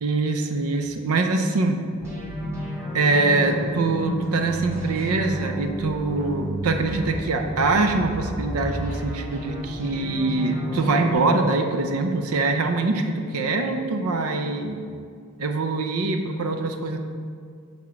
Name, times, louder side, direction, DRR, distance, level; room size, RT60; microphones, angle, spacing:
voice 1, 0.0-1.8 2.9-14.8 15.4-17.0, right 3 dB, 85° right, 5 dB, 0.6 m, -24 dB
sound 1, 2.0-11.1, equal, 15° right, 1.9 m, -31 dB
7.5 x 3.6 x 5.9 m, 2.2 s
head